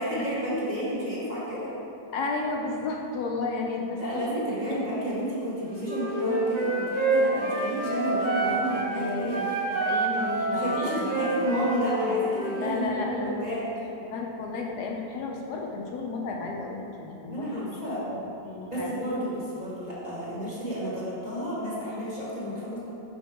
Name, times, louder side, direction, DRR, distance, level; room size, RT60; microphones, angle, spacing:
voice 1, 0.0-1.7 3.9-9.4 10.5-13.7 17.3-18.0 18.7-22.8, right 1 dB, 25° right, -9 dB, 1.2 m, -31 dB
voice 2, 2.1-4.0 4.3-4.4 8.4-11.0 11.4-11.5 12.6-13.5 14.1-17.8 18.1-19.0, left 3 dB, 75° left, 0 dB, 1.1 m, -33 dB
Wind instrument woodwind instrument, 5.8-8.9 9.3-12.7, right 2 dB, 70° right, 1.5 m, -27 dB
5.6 x 5.3 x 3.3 m, 2.8 s
omnidirectional pair, 1.8 m